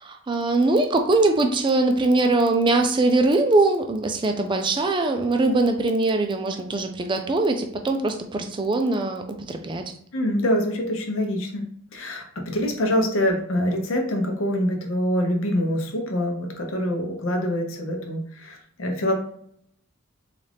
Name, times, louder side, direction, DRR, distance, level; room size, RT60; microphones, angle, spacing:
voice 1, 0.0-9.9, right 2 dB, 20° right, 5 dB, 0.4 m, -22 dB
voice 2, 10.1-11.7 11.9-19.1, equal, 65° left, 3 dB, 0.7 m, -25 dB
4.1 x 2.4 x 3.4 m, 0.65 s
head